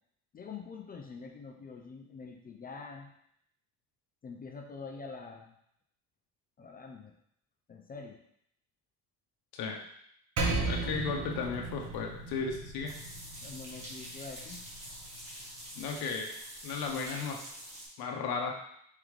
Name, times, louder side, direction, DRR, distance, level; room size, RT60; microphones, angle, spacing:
voice 1, 0.3-3.1 4.2-5.5 6.6-7.1 7.7-8.2 10.8-11.0 13.4-14.6, left 4 dB, 25° left, 2 dB, 0.3 m, -45 dB
Percussion, 10.4-15.1, right 3 dB, 45° right, 0.8 m, -36 dB
voice 2, 10.7-12.9 15.8-16.4 16.6-17.4 18.0-18.6, left 5 dB, 75° left, 1 dB, 0.8 m, -35 dB
sound 1, 12.8-17.9, right 1 dB, 15° right, 1.4 m, -46 dB
3.7 x 3.5 x 3.2 m, 0.72 s
cardioid pair, 120°, 37 cm